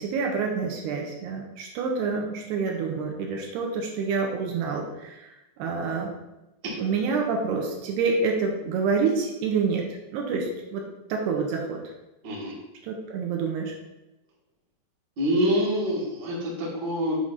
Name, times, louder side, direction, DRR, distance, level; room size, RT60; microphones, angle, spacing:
voice 1, 0.0-5.3 5.6-6.1 6.8-9.9 10.1-10.8 11.1-11.8 12.8-13.7, right 5 dB, 80° right, 1 dB, 2.7 m, -27 dB
voice 2, 12.2-12.5 15.2-17.1, equal, 50° right, -4 dB, 1.2 m, -26 dB
7.4 x 4.9 x 4.0 m, 0.96 s
omnidirectional pair, 5.0 m